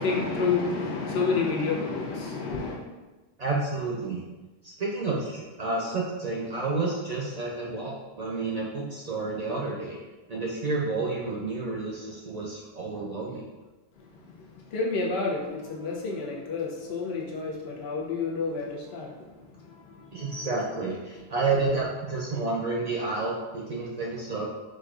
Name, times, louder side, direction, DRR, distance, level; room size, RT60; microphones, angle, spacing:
voice 1, 0.0-2.8 14.0-20.5, left 4 dB, 80° left, -1 dB, 0.9 m, -30 dB
voice 2, 3.4-4.2 4.6-10.0 10.3-13.4 20.1-24.4, right 3 dB, 55° right, -4 dB, 0.5 m, -30 dB
Guitar, 15.1-19.8, left 2 dB, 30° left, 0.8 m, -48 dB
4.1 x 2.4 x 2.3 m, 1.2 s
omnidirectional pair, 1.1 m